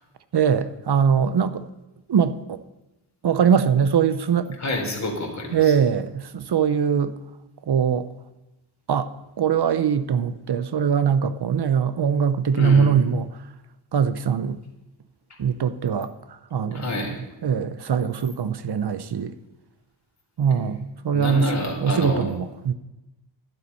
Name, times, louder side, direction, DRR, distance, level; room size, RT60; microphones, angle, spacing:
voice 1, 0.3-1.7 2.1-2.6 3.2-4.6 5.5-7.1 7.7-8.1 8.9-9.1 9.4-13.3 13.9-14.6 15.4-16.1 16.5-17.1 17.4-19.3 20.4-21.5 21.8-22.7, right 7 dB, 60° right, 0.7 m, -22 dB
voice 2, 4.6-5.7 12.5-12.9 16.7-17.1 21.1-22.3, left 1 dB, 35° left, 3.4 m, -28 dB
11.5 x 11.5 x 5.4 m
wide cardioid pair, 130°, 46 cm